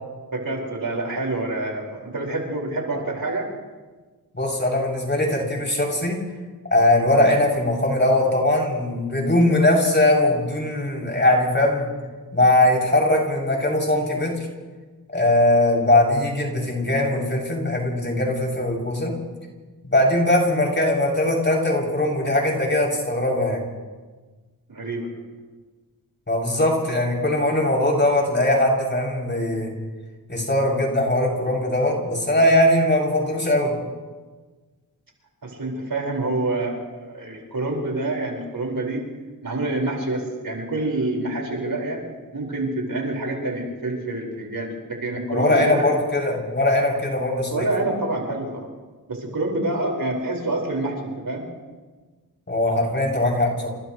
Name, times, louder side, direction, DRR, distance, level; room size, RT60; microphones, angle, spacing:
voice 1, 0.3-3.5 24.7-25.1 35.4-39.1 39.4-42.0 42.3-45.9 47.5-48.7 49.1-51.5, right 2 dB, 65° right, -1 dB, 5.4 m, -27 dB
voice 2, 4.3-6.2 6.7-11.9 12.3-14.3 15.1-19.1 19.9-23.6 26.3-29.7 30.3-33.7 45.3-47.7 52.5-53.7, left 1 dB, 30° left, -1 dB, 7.4 m, -20 dB
29.5 x 27.5 x 3.3 m, 1.3 s
cardioid pair, 60°, 37 cm